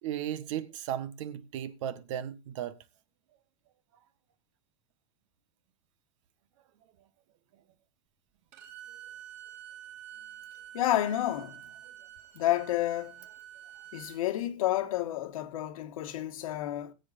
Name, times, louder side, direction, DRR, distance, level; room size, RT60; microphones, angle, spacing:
voice 1, 0.0-2.8, right 10 dB, 65° right, 1.6 m, -35 dB
Bowed string instrument, 8.5-14.2, right 11 dB, 45° right, 4.2 m, -48 dB
voice 2, 10.7-11.6 12.3-13.2 13.9-16.9, left 13 dB, 90° left, 1.9 m, -30 dB
21.0 x 8.1 x 2.7 m
supercardioid pair, 160°, 17 cm